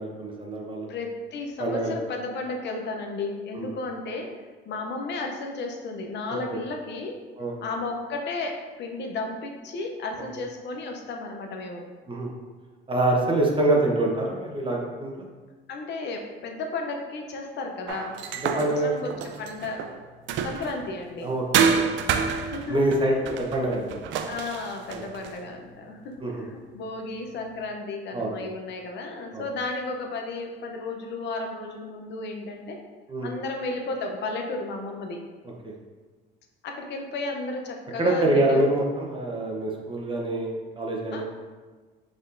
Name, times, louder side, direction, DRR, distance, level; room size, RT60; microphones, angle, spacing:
voice 1, 0.0-0.9 1.6-1.9 3.5-3.7 7.4-7.5 12.1-12.3 12.9-15.3 18.4-18.9 21.2-21.4 21.7-21.8 22.7-24.1 24.9-25.0 26.2-26.5 28.1-28.4 29.3-29.4 33.1-33.3 35.6-35.7 38.0-41.2, right 1 dB, 25° right, -1 dB, 0.8 m, -25 dB
voice 2, 0.9-4.3 4.7-7.2 7.6-11.8 15.7-18.2 18.5-19.9 20.4-21.3 22.4-23.0 24.2-32.8 33.2-35.2 36.6-38.7 41.1-41.2, left 3 dB, 60° left, 3 dB, 0.6 m, -33 dB
sound 1, 17.9-20.9 21.5-25.4, right 6 dB, 65° right, 0.4 m, -28 dB
4.3 x 3.6 x 2.6 m, 1.4 s
cardioid pair, 90°, 20 cm